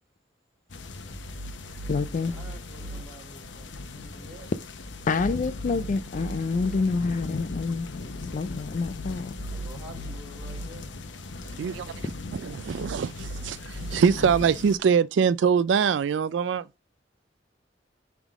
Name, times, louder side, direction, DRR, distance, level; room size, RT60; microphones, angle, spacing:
sound 1, 0.7-14.8, left 3 dB, 80° left, 0.9 m, -39 dB
sound 2, 1.1-3.0 4.9-6.8 8.7-10.6 12.5-14.4, right 1 dB, 20° right, 2.9 m, -39 dB
voice 1, 1.2-1.5 1.8-4.5 9.5-11.0, right 1 dB, ahead, 3.4 m, -48 dB
voice 2, 1.9-2.3 5.1-7.9 8.2-9.3, left 4 dB, 45° left, 0.4 m, -27 dB
voice 3, 11.6-12.0 12.3-16.7, right 6 dB, 75° right, 0.3 m, -23 dB
11.0 x 3.6 x 3.5 m
head